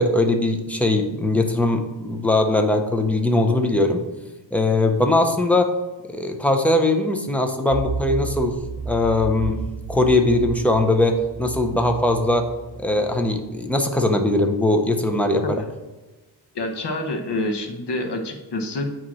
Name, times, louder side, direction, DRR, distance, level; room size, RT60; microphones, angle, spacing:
voice 1, 0.0-4.0 4.5-5.7 6.1-8.6 8.9-9.6 9.9-12.5 12.8-15.4, left 2 dB, 5° left, 4 dB, 0.5 m, -20 dB
sound 1, 7.7-13.5, right 4 dB, 60° right, 1.2 m, -33 dB
voice 2, 16.5-18.9, left 1 dB, 60° left, 4 dB, 1.1 m, -27 dB
8.6 x 3.0 x 6.1 m, 1.2 s
wide cardioid pair, 155°, 46 cm